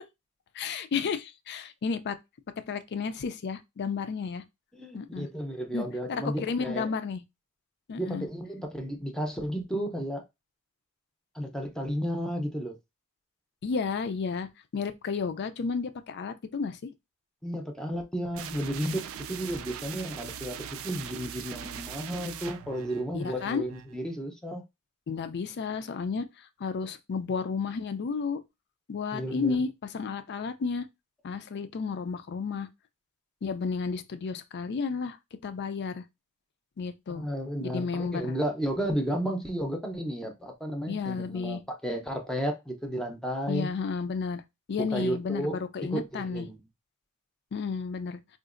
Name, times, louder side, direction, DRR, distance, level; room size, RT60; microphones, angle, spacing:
voice 1, 0.5-2.2 2.7-4.4 4.9-5.3 5.7-7.2 7.9-8.3 13.6-14.5 14.7-16.9 23.1-23.6 25.1-26.3 26.6-28.4 28.9-30.9 31.2-32.7 33.4-35.2 35.4-36.1 36.8-37.2 37.6-38.4 40.9-41.6 43.5-44.4 44.7-46.5 47.5-48.2, left 5 dB, 50° left, 0.4 m, -32 dB
voice 2, 4.7-6.9 8.0-10.2 11.3-12.8 17.4-24.6 29.1-29.6 37.1-43.7 44.8-45.6 45.9-46.5, equal, 5° left, 0.6 m, -33 dB
sound 1, 18.3-24.0, right 9 dB, 65° right, 0.3 m, -41 dB
3.8 x 2.5 x 2.4 m
head